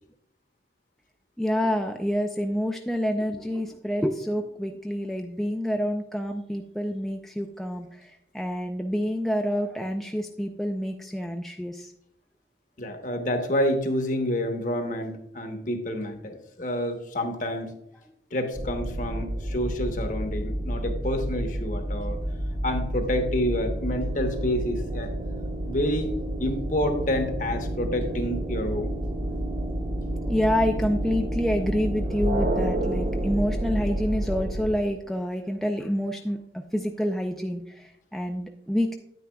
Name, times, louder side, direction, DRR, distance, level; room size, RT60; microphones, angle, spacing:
voice 1, 1.4-11.9 30.2-36.4 36.7-39.0, equal, ahead, 3 dB, 0.4 m, -28 dB
voice 2, 12.8-17.8 18.3-22.2 22.6-25.1 25.7-26.1 26.4-28.9, left 1 dB, 45° left, 5 dB, 1.1 m, -28 dB
sound 1, 18.5-34.7, right 1 dB, 70° right, 1.7 m, -30 dB
9.3 x 9.2 x 2.3 m, 0.78 s
head